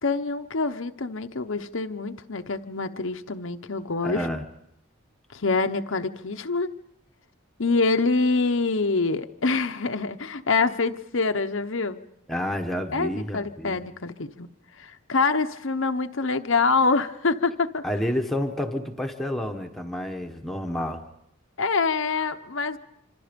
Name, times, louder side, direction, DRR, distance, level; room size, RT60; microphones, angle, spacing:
voice 1, 0.0-4.3 5.3-6.7 7.6-12.0 12.9-14.5 14.8-17.8 21.6-22.8, left 4 dB, 60° left, 7 dB, 0.9 m, -25 dB
voice 2, 4.0-4.4 12.3-13.8 17.8-21.0, equal, ahead, 3 dB, 1.2 m, -29 dB
26.5 x 26.0 x 5.2 m, 0.79 s
head